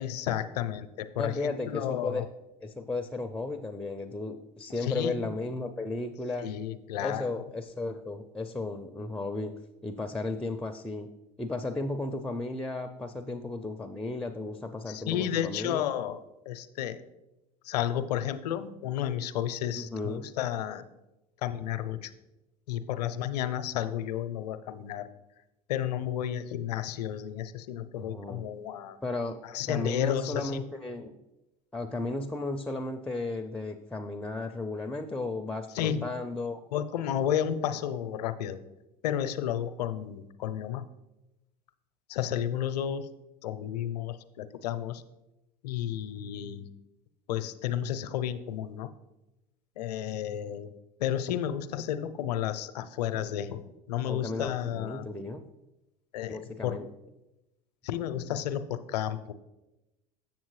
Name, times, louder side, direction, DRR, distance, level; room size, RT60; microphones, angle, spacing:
voice 1, 0.0-2.3 4.8-5.3 6.4-7.4 14.9-17.0 17.6-20.8 21.4-22.1 22.7-25.1 25.7-29.0 29.4-30.6 35.7-36.0 36.7-38.6 39.0-40.9 42.1-43.1 43.4-45.0 45.6-46.7 47.3-48.9 49.8-50.7 51.0-53.6 53.9-55.1 56.1-56.8 57.8-59.3, left 10 dB, 80° left, 12 dB, 0.5 m, -32 dB
voice 2, 1.2-2.3 2.6-6.5 7.0-9.6 9.8-11.1 11.4-15.8 19.7-20.3 28.0-28.5 29.0-29.4 29.7-31.1 31.7-36.6 54.1-55.5 56.3-56.9, left 2 dB, 5° left, 9 dB, 0.4 m, -34 dB
7.4 x 7.1 x 3.1 m, 0.98 s
hypercardioid pair, 80°, 20 cm